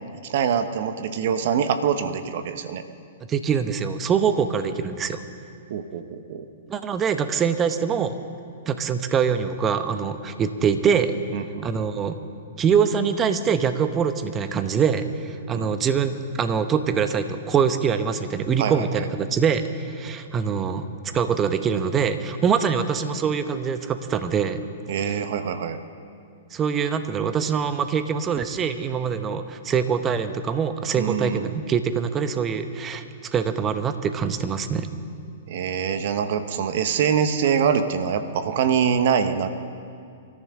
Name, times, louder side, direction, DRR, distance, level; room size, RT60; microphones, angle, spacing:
voice 1, 0.2-2.8 5.7-6.4 11.3-11.7 15.5-15.7 18.6-19.1 24.9-25.8 31.0-31.5 35.5-39.5, right 7 dB, 55° right, 9 dB, 1.1 m, -24 dB
voice 2, 3.3-5.2 6.7-8.1 8.7-11.1 11.6-12.2 12.6-20.8 21.1-24.6 26.5-33.0 33.3-34.9, right 6 dB, 25° right, 10 dB, 1.0 m, -24 dB
25.5 x 14.0 x 3.8 m, 2.4 s
hypercardioid pair, 110°, 0 cm